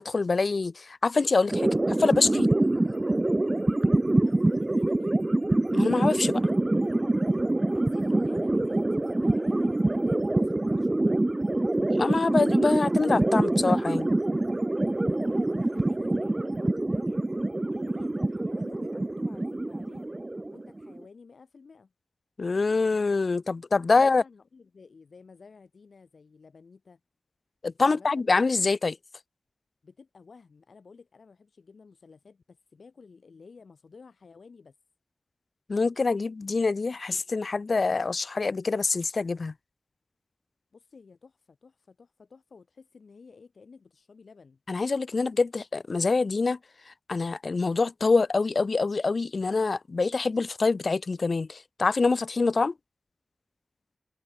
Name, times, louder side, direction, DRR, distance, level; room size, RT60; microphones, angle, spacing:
voice 1, 0.0-2.5 5.7-6.4 11.9-14.1 22.4-24.2 27.6-29.0 35.7-39.5 44.7-46.6 47.1-52.7, left 4 dB, 55° left, 1.0 m, -25 dB
sound 1, 1.5-21.0, right 2 dB, 25° right, 0.5 m, -25 dB
voice 2, 4.2-5.3 7.7-11.2 15.1-17.2 17.7-20.1 20.5-21.9 23.9-27.0 27.8-28.3 29.8-34.8 40.7-44.6, left 4 dB, 80° left, 5.6 m, -53 dB
wide cardioid pair, 100°, 0 cm